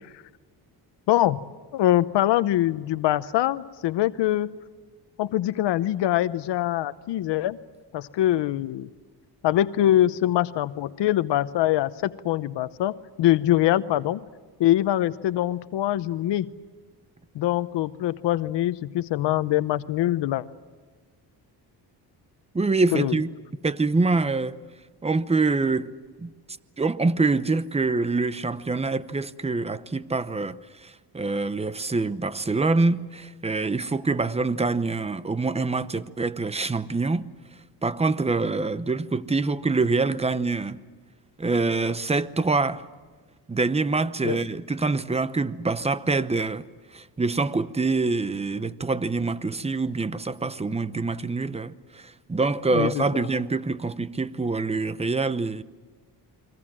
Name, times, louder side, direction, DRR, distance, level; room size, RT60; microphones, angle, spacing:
voice 1, 1.1-1.4 1.7-4.5 5.2-7.6 7.9-8.9 9.4-14.2 14.6-16.5 17.3-20.4 22.9-23.2 44.2-44.4 52.7-53.3, left 13 dB, 90° left, 0.9 m, -23 dB
voice 2, 22.5-23.3 23.6-24.6 25.0-25.9 26.2-26.3 26.8-37.2 37.8-40.8 41.4-42.9 43.5-46.7 46.9-55.6, right 3 dB, 15° right, 0.8 m, -25 dB
29.5 x 23.0 x 7.5 m
cardioid pair, 115°, 41 cm